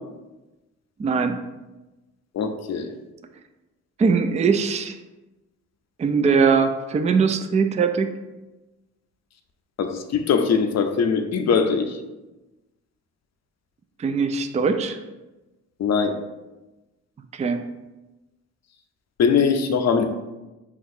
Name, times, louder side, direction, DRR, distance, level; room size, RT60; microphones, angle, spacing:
voice 1, 1.0-1.4 4.0-5.0 6.0-8.1 14.0-15.0 17.3-17.6, right 5 dB, 20° right, 7 dB, 0.3 m, -21 dB
voice 2, 2.3-2.9 9.8-12.0 15.8-16.2 19.2-20.0, left 6 dB, 45° left, 6 dB, 0.6 m, -21 dB
5.7 x 2.4 x 2.7 m, 1.1 s
hypercardioid pair, 50°, 38 cm